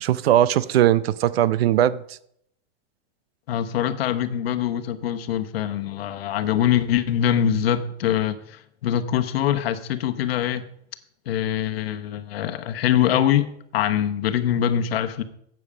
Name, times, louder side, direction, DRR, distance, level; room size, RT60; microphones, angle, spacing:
voice 1, 0.0-2.0, right 12 dB, 60° right, 18 dB, 0.6 m, -19 dB
voice 2, 3.5-10.6 11.3-15.2, left 10 dB, 55° left, 9 dB, 1.1 m, -23 dB
12.5 x 8.3 x 5.0 m, 0.72 s
supercardioid pair, 175°, 35 cm